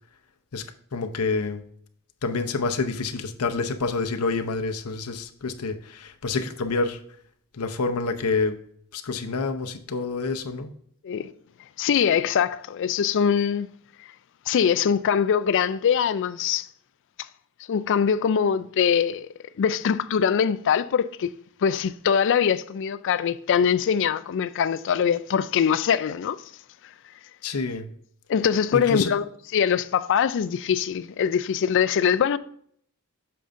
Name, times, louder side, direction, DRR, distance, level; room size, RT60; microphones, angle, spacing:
voice 1, 0.9-1.6 2.2-7.0 7.5-8.6 8.9-10.7 27.4-27.9 28.7-29.1, left 4 dB, 85° left, 0.7 m, -27 dB
voice 2, 11.8-13.7 14.5-16.7 17.7-19.3 19.6-21.3 21.6-26.4 28.3-29.2 29.5-32.4, left 7 dB, 55° left, 0.4 m, -22 dB
8.6 x 6.7 x 2.6 m
head